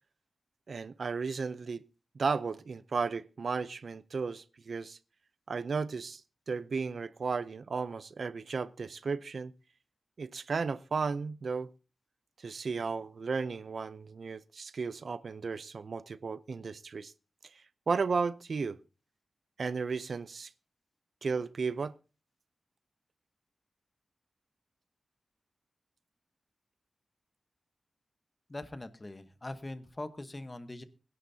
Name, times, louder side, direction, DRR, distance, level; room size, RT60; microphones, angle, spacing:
voice 1, 0.7-1.8 2.1-5.0 5.5-6.2 6.5-9.5 10.2-11.7 12.4-17.1 17.9-18.8 19.6-20.5 21.2-21.9, right 5 dB, 60° right, 0.6 m, -34 dB
voice 2, 28.5-30.8, left 2 dB, 25° left, 1.1 m, -42 dB
20.0 x 11.0 x 2.8 m
wide cardioid pair, 115°, 0 cm